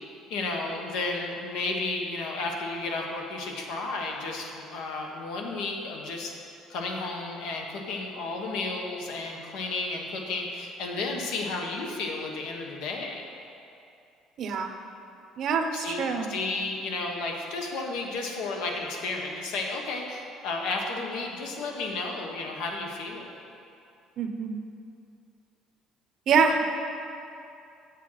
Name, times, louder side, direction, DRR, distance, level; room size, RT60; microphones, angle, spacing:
voice 1, 0.3-6.3 6.7-13.2 15.7-16.0 16.3-23.4, left 3 dB, 75° left, 1 dB, 1.3 m, -32 dB
voice 2, 14.4-14.7 15.4-16.3 24.2-24.6 26.3-26.6, right 5 dB, 50° right, 5 dB, 0.7 m, -25 dB
7.6 x 7.3 x 5.7 m, 2.6 s
cardioid pair, 145°, 0 cm